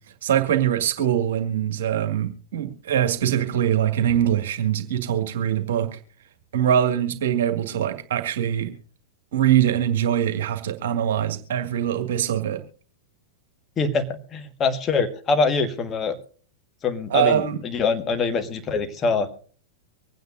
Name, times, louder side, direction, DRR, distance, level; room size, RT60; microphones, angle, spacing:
voice 1, 0.2-5.9 6.5-8.7 9.3-12.6 17.1-17.6, right 10 dB, 60° right, 6 dB, 1.8 m, -23 dB
voice 2, 13.8-16.2 16.8-19.3, left 4 dB, 25° left, 7 dB, 1.6 m, -24 dB
25.0 x 9.3 x 2.6 m, 0.42 s
figure-of-eight pair, 95°, 0 cm